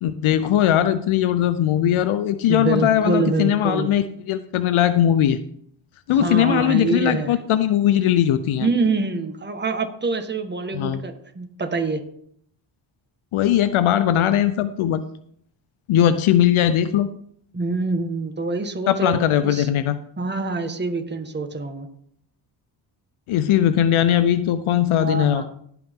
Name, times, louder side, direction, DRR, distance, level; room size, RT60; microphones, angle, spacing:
voice 1, 0.0-5.4 6.1-8.7 10.7-11.0 13.3-15.0 15.9-17.1 18.9-20.0 23.3-25.5, left 11 dB, 80° left, 12 dB, 0.7 m, -19 dB
voice 2, 2.5-3.9 6.1-7.3 8.6-12.0 17.5-19.7 20.2-21.9 24.9-25.5, right 3 dB, 20° right, 5 dB, 1.5 m, -25 dB
17.5 x 6.1 x 3.7 m, 0.64 s
cardioid pair, 75°, 48 cm